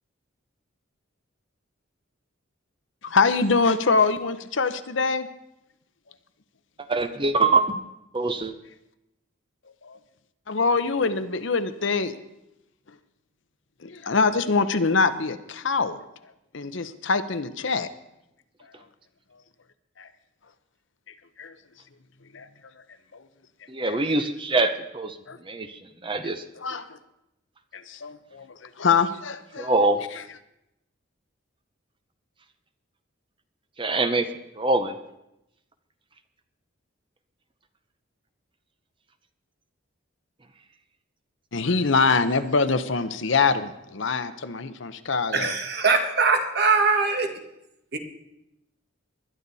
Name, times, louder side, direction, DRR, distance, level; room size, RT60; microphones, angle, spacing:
voice 1, 3.0-5.3 9.8-10.0 10.5-12.1 13.8-16.0 16.5-17.9 20.0-20.1 21.4-21.5 22.3-22.5 23.1-23.2 23.9-24.0 25.3-25.4 26.2-27.0 27.7-30.2 41.5-45.5, left 4 dB, 65° left, 11 dB, 0.8 m, -24 dB
voice 2, 6.9-7.6 8.1-8.5 23.7-25.2 25.5-26.4 29.6-30.0 33.8-34.3 34.6-34.9, right 3 dB, 25° right, 9 dB, 0.7 m, -23 dB
voice 3, 45.3-47.3 47.9-48.0, right 4 dB, 50° right, 5 dB, 1.6 m, -22 dB
20.5 x 11.5 x 4.1 m, 0.89 s
head